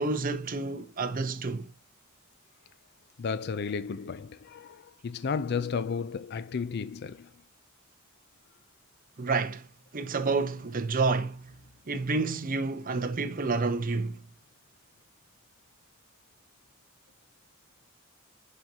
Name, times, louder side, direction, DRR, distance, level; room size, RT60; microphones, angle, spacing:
voice 1, 0.0-1.7 9.2-9.6 9.9-11.4 11.9-14.2, right 3 dB, 40° right, 0.8 m, -29 dB
voice 2, 3.2-7.3, left 5 dB, 50° left, 0.4 m, -33 dB
10.5 x 4.0 x 2.8 m
head